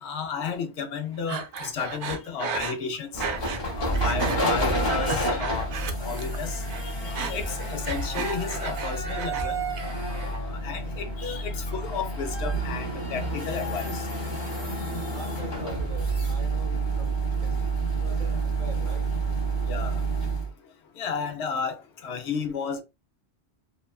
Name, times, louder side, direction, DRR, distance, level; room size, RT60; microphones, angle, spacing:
voice 1, 0.0-3.2 3.8-5.7 6.0-9.6 10.1-14.0 19.7-20.0 21.0-22.8, left 6 dB, 75° left, 0.8 m, -33 dB
Breathing, 1.3-3.7 3.9-4.4 4.8-6.4 6.6-9.5 9.8-10.4, right 4 dB, 85° right, 0.9 m, -34 dB
sound 1, 3.1-20.5, right 2 dB, 30° left, 0.6 m, -29 dB
voice 2, 15.1-19.1, right 1 dB, 50° right, 0.9 m, -44 dB
2.9 x 2.1 x 2.3 m
omnidirectional pair, 1.2 m